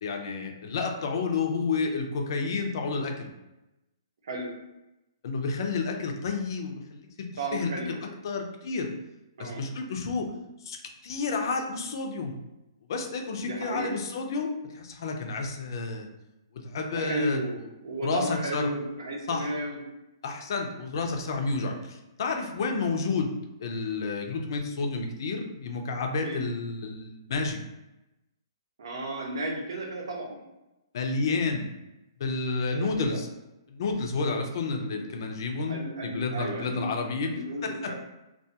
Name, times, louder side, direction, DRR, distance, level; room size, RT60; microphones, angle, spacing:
voice 1, 0.0-3.3 5.2-7.7 8.0-8.9 9.4-10.3 10.6-10.8 11.0-12.4 12.9-16.1 16.5-17.4 18.0-18.7 19.3-19.5 20.2-23.3 23.6-27.6 30.9-31.7 32.2-33.3 33.7-37.3 37.6-37.9, left 4 dB, 55° left, 3 dB, 0.4 m, -30 dB
voice 2, 7.4-8.0 9.4-9.6 13.4-13.9 16.9-19.8 26.2-26.4 28.8-30.4 32.7-33.2 35.7-37.0 37.2-37.9, right 1 dB, 70° right, 0 dB, 0.7 m, -33 dB
2.3 x 2.2 x 2.8 m, 0.96 s
hypercardioid pair, 155°, 3 cm